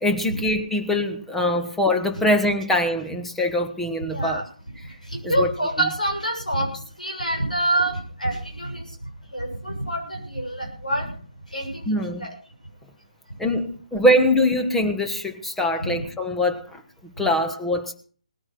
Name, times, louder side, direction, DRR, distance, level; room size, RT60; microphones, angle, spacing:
voice 1, 0.0-4.4 5.2-5.5 11.9-12.3 13.4-17.9, left 1 dB, 5° left, 4 dB, 1.4 m, -23 dB
voice 2, 4.1-4.4 5.1-6.7 7.0-8.8 9.3-11.1 11.5-12.3 16.0-16.1 17.2-17.3, right 1 dB, 80° left, 1 dB, 6.8 m, -26 dB
19.0 x 9.7 x 5.9 m, 0.43 s
figure-of-eight pair, 140°, 4 cm